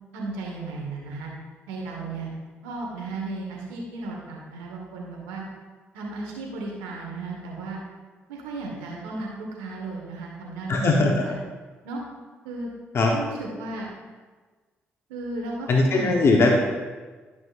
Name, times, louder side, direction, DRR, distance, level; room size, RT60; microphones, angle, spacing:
voice 1, 0.1-1.3 1.7-2.3 2.6-5.4 5.9-7.8 8.3-11.3 11.8-12.0 12.4-12.7 13.0-13.9 15.1-16.2, right 3 dB, 90° right, -1 dB, 1.2 m, -34 dB
voice 2, 10.7-11.1 12.9-13.1 15.7-16.5, left 3 dB, 55° left, 1 dB, 0.9 m, -19 dB
11.0 x 6.1 x 2.5 m, 1.4 s
hypercardioid pair, 50°, 5 cm